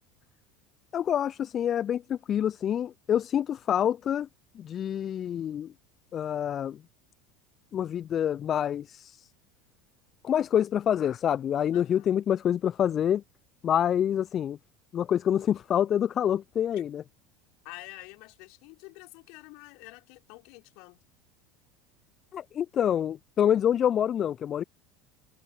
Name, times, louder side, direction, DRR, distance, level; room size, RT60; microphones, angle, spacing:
voice 1, 0.9-4.3 4.5-5.7 6.1-6.8 7.7-9.3 10.2-13.2 13.6-14.6 14.9-17.0 22.3-24.6, left 9 dB, 40° left, 0.4 m, -27 dB
voice 2, 11.7-12.2 16.7-16.8 17.6-21.0, left 30 dB, 60° left, 3.8 m, -48 dB
figure-of-eight pair, 75°, 0 cm